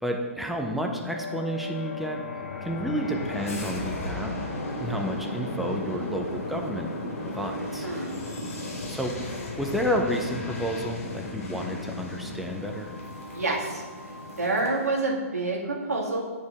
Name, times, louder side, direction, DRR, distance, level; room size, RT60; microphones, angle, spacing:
voice 1, 0.0-2.2 2.6-4.3 4.8-6.9 7.2-7.9 8.9-12.9, equal, ahead, 1 dB, 0.7 m, -31 dB
sound 1, 1.1-14.9, left 2 dB, 70° left, 1.9 m, -35 dB
voice 2, 7.8-8.1 13.3-13.8 14.4-16.2, right 2 dB, 85° right, -1 dB, 1.6 m, -27 dB
9.5 x 4.4 x 3.6 m, 1.4 s
hypercardioid pair, 125°, 8 cm